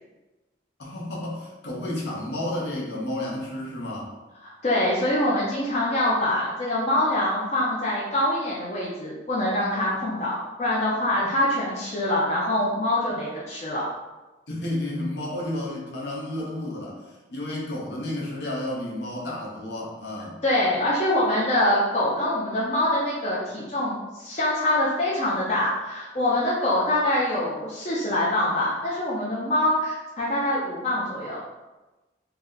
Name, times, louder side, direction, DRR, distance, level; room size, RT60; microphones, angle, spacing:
voice 1, 0.8-4.1 11.2-11.3 14.5-20.4, left 1 dB, 65° left, -4 dB, 0.8 m, -31 dB
voice 2, 4.4-13.8 20.4-31.4, left 1 dB, 35° left, -6 dB, 0.5 m, -24 dB
2.8 x 2.1 x 3.7 m, 1.1 s
head